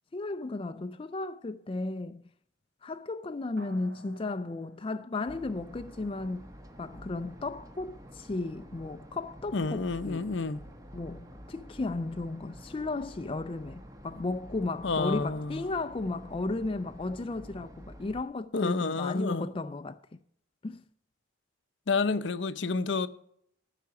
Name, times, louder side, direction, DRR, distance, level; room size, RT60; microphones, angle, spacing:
voice 1, 0.1-2.2 2.8-6.5 6.8-10.2 10.9-20.0 20.6-20.8, left 2 dB, 30° left, 0.4 m, -34 dB
sound 1, 3.6-6.3, equal, 65° right, 5.0 m, -56 dB
sound 2, 5.3-18.2, equal, 20° right, 1.2 m, -49 dB
voice 2, 9.5-10.6 14.8-15.6 18.5-19.5 21.9-23.1, left 4 dB, 65° left, 0.7 m, -29 dB
14.5 x 5.8 x 7.0 m
head